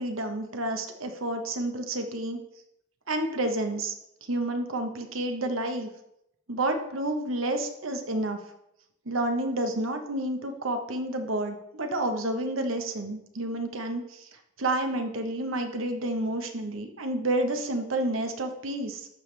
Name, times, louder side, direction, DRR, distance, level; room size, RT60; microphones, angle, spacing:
voice 1, 0.0-2.4 3.1-3.9 4.3-5.9 6.5-8.4 9.0-14.3 14.6-19.1, right 1 dB, 90° right, 6 dB, 1.2 m, -30 dB
12.0 x 7.2 x 3.4 m, 0.81 s
head